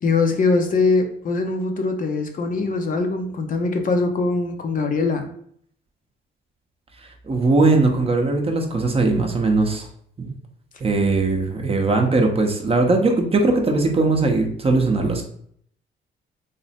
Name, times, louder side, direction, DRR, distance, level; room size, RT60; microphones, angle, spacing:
voice 1, 0.0-5.3, left 3 dB, 45° left, 5 dB, 0.6 m, -22 dB
voice 2, 7.3-9.9 10.2-10.3 10.8-15.3, right 3 dB, 30° right, 3 dB, 0.7 m, -19 dB
3.3 x 2.0 x 4.1 m, 0.62 s
cardioid pair, 90°, 20 cm